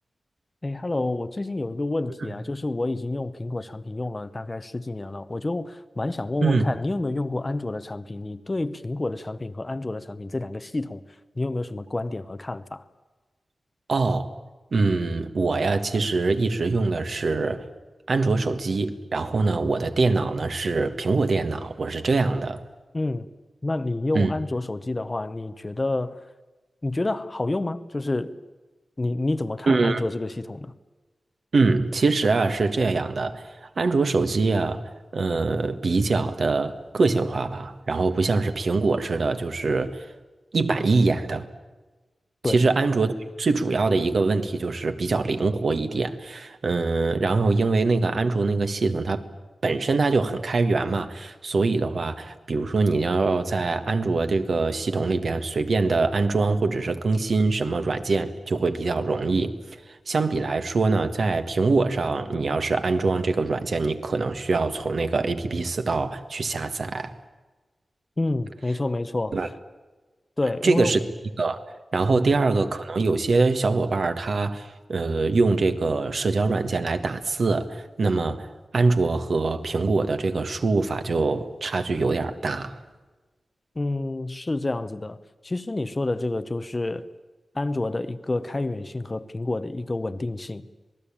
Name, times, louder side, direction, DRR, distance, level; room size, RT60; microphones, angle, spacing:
voice 1, 0.6-11.0 11.4-12.8 22.9-23.3 23.6-26.3 26.8-28.4 29.0-30.8 42.4-42.6 68.2-69.5 70.4-71.0 83.7-85.2 85.4-87.1 87.5-90.7, left 2 dB, 20° left, 0.9 m, -29 dB
voice 2, 13.9-14.3 14.7-17.7 18.1-22.6 24.1-24.3 29.7-30.0 31.5-40.1 40.5-41.5 42.5-49.2 49.6-67.1 69.3-69.5 70.6-71.0 71.4-71.6 71.9-82.8, right 3 dB, 50° right, 1.7 m, -24 dB
27.0 x 19.5 x 8.8 m
wide cardioid pair, 165°, 0 cm